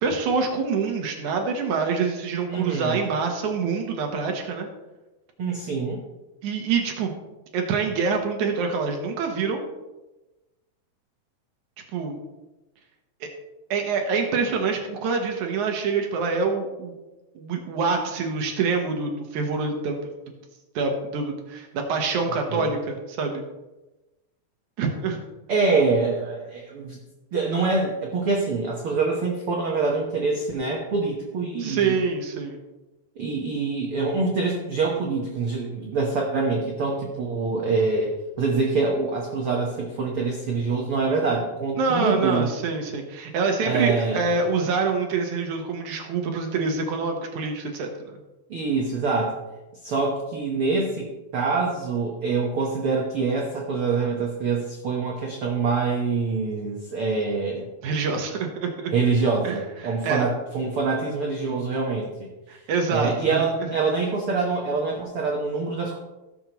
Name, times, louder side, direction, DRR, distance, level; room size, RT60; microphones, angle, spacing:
voice 1, 0.0-4.7 6.4-7.1 7.5-9.7 11.9-12.2 13.2-13.3 13.7-16.9 17.4-20.0 20.8-23.4 24.8-25.2 31.6-32.6 41.8-48.2 57.8-58.9 59.4-60.3 62.5-63.7, right 4 dB, 65° right, 3 dB, 2.1 m, -26 dB
voice 2, 2.5-3.0 5.4-6.0 22.5-22.7 25.5-27.0 27.3-32.0 33.2-42.5 43.6-44.2 48.5-49.4 49.8-51.1 51.3-57.7 58.9-62.3 62.9-66.0, right 4 dB, 85° right, -1 dB, 1.2 m, -25 dB
17.0 x 7.2 x 3.0 m, 1.1 s
omnidirectional pair, 4.3 m